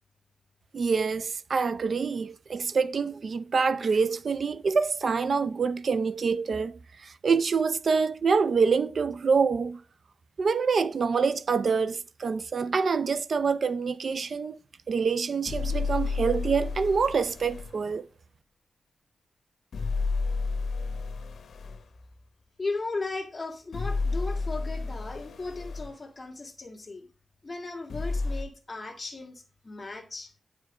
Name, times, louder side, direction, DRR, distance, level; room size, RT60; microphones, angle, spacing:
voice 1, 0.7-9.8 10.4-14.6 14.9-18.1, right 5 dB, 65° right, 0.5 m, -26 dB
sound 1, 15.5-17.7 19.7-21.8 23.7-25.9 27.9-28.4, left 4 dB, 85° left, 0.8 m, -31 dB
voice 2, 22.6-27.1 27.4-30.3, left 3 dB, 30° left, 1.8 m, -36 dB
9.1 x 5.0 x 4.7 m
wide cardioid pair, 85°, 0 cm